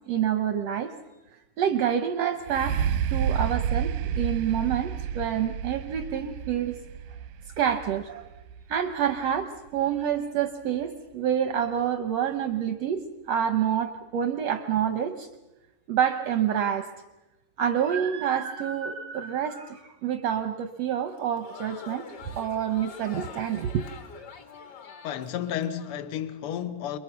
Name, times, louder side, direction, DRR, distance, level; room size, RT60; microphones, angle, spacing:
voice 1, 0.1-0.9 1.6-6.8 7.6-8.3 8.7-15.3 15.9-16.9 17.6-22.0 22.3-23.8, right 9 dB, 70° right, 1.5 m, -27 dB
sound 1, 2.4-10.2 10.8-10.9, right 8 dB, 90° right, 2.7 m, -31 dB
Crowd, 21.1-25.9, left 5 dB, 45° left, 1.5 m, -45 dB
voice 2, 25.0-27.0, left 10 dB, 80° left, 1.2 m, -32 dB
28.0 x 22.0 x 5.9 m
omnidirectional pair, 3.9 m